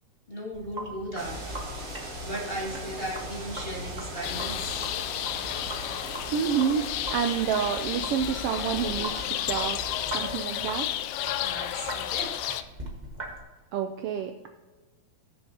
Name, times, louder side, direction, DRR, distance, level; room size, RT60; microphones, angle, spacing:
voice 1, 0.3-1.4 1.8-4.9 11.4-12.6, equal, 25° left, -3 dB, 1.7 m, -37 dB
Sink (filling or washing), 0.5-13.4, right 1 dB, 30° right, 0.9 m, -41 dB
sound 1, 1.2-10.4, right 1 dB, 60° right, 4.3 m, -40 dB
sound 2, 4.2-12.6, left 13 dB, 85° left, 1.9 m, -32 dB
voice 2, 6.3-10.9 13.7-14.5, right 8 dB, 90° right, 6 dB, 1.3 m, -29 dB
18.0 x 6.7 x 2.8 m, 1.2 s
omnidirectional pair, 3.3 m